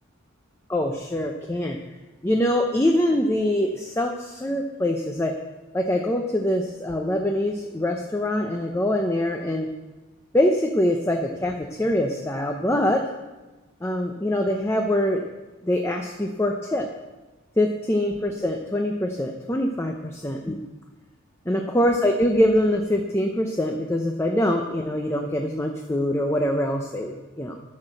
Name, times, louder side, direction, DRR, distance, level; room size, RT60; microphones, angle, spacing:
voice 1, 0.7-1.8 2.2-5.3 5.7-9.7 10.3-13.1 13.8-15.2 15.6-16.9 17.6-20.6 21.5-27.6, left 1 dB, 15° left, 3 dB, 0.6 m, -24 dB
11.0 x 6.4 x 7.7 m, 1.2 s
head